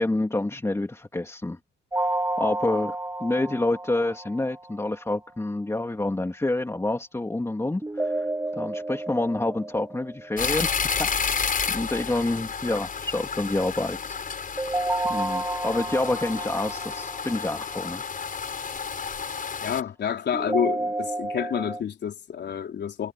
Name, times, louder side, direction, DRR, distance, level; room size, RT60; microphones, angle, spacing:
voice 1, 0.0-1.6 1.9-2.1 2.4-11.4 11.7-14.2 15.1-18.0, left 2 dB, 15° left, 3.1 m, -28 dB
sound 1, 1.9-4.9 7.8-10.9 14.6-17.8 20.3-21.8, right 2 dB, 15° right, 6.8 m, -31 dB
sound 2, 10.4-19.8, left 6 dB, 45° left, 5.8 m, -31 dB
voice 2, 19.6-23.1, left 8 dB, 60° left, 4.2 m, -29 dB
cardioid pair, 90°, 20 cm